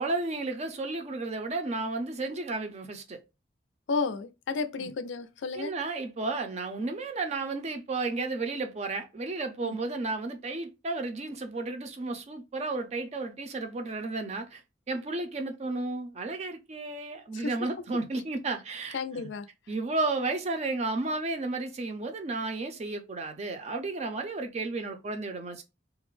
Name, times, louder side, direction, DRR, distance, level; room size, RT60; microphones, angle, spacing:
voice 1, 0.0-3.2 4.8-4.9 5.5-14.6 14.9-19.3 19.7-25.6, right 3 dB, 35° right, 0.4 m, -33 dB
voice 2, 3.9-5.7 9.6-9.8 17.3-17.5 18.9-19.5, left 4 dB, 80° left, 0.4 m, -32 dB
2.4 x 2.0 x 3.0 m
head